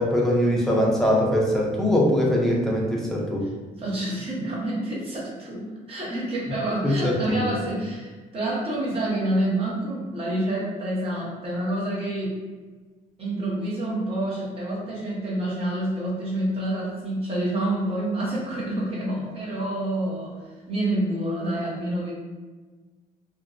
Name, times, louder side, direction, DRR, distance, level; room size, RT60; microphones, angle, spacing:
voice 1, 0.0-3.5 6.8-7.6, equal, 5° left, -3 dB, 0.5 m, -22 dB
voice 2, 3.7-12.4 13.2-20.3 20.7-22.1, right 1 dB, 40° right, -5 dB, 0.9 m, -28 dB
2.6 x 2.0 x 2.4 m, 1.3 s
cardioid pair, 135°, 16 cm